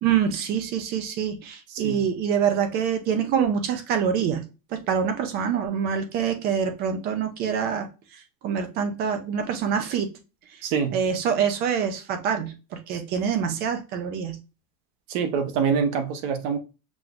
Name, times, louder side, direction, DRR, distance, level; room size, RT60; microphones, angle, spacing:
voice 1, 0.0-4.4 4.7-7.9 8.4-10.1 10.9-14.4, right 7 dB, 25° right, 0.4 m, -25 dB
voice 2, 10.6-11.0 15.1-16.6, right 6 dB, 45° right, 0.9 m, -25 dB
6.1 x 3.1 x 2.4 m
supercardioid pair, 160°, 47 cm